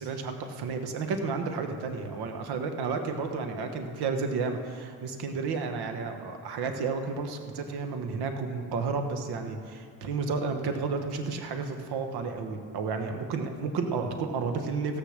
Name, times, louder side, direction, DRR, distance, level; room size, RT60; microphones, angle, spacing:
voice 1, 0.0-15.0, right 4 dB, 75° right, 6 dB, 1.3 m, -32 dB
15.0 x 6.9 x 6.6 m, 2.1 s
supercardioid pair, 75°, 39 cm